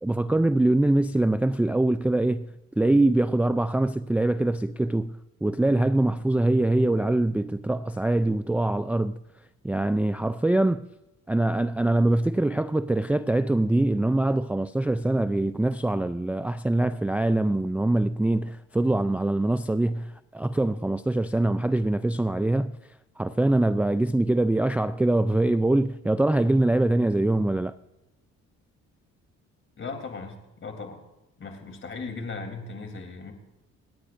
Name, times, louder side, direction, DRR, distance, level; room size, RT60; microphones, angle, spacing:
voice 1, 0.0-9.2 9.6-10.8 11.3-22.7 23.2-27.8, right 2 dB, 5° right, 0.4 m, -23 dB
voice 2, 29.8-31.0 31.4-33.3, left 4 dB, 40° left, 3.3 m, -37 dB
28.0 x 9.5 x 2.6 m
cardioid pair, 90°, 30 cm